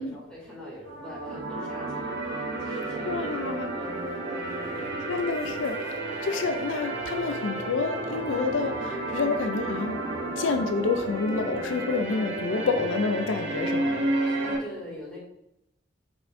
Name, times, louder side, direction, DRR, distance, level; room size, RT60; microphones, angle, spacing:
voice 1, 0.0-3.3 3.7-4.3 4.7-5.0 12.5-12.7 14.2-15.2, equal, 5° left, -6 dB, 2.4 m, -44 dB
sound 1, 0.9-14.6, right 2 dB, 70° right, 1.9 m, -31 dB
voice 2, 3.1-3.7 5.1-10.0 10.4-14.0, left 4 dB, 80° left, 7 dB, 0.4 m, -28 dB
7.0 x 5.5 x 2.6 m, 0.80 s
head